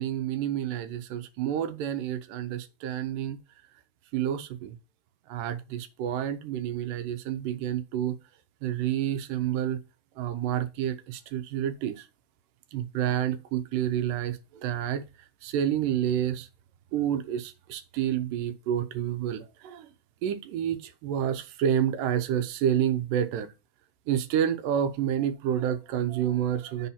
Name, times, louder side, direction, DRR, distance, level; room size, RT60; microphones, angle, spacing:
voice 1, 0.0-3.4 4.1-4.8 5.3-8.2 8.6-9.8 10.2-12.1 12.7-15.0 15.4-16.5 16.9-19.9 20.2-23.5 24.1-26.9, right 10 dB, 80° right, 2.4 m, -29 dB
6.6 x 4.2 x 5.6 m
omnidirectional pair, 3.8 m